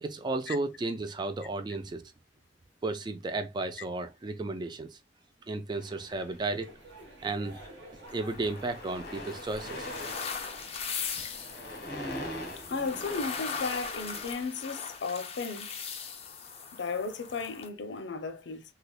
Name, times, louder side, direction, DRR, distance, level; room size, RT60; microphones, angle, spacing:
voice 1, 0.0-2.0 2.8-5.0 5.5-6.7 7.2-7.6 8.1-9.9, right 3 dB, 25° right, 0.3 m, -33 dB
sound 1, 5.7-6.7 7.5-7.7 8.0-14.5, left 1 dB, 60° left, 1.0 m, -43 dB
sound 2, 6.1-14.3, right 1 dB, 75° right, 1.7 m, -52 dB
sound 3, 8.1-17.7, left 6 dB, 35° left, 0.6 m, -40 dB
voice 2, 12.6-15.7 16.7-18.6, left 4 dB, 80° left, 0.6 m, -35 dB
3.3 x 2.8 x 2.3 m
head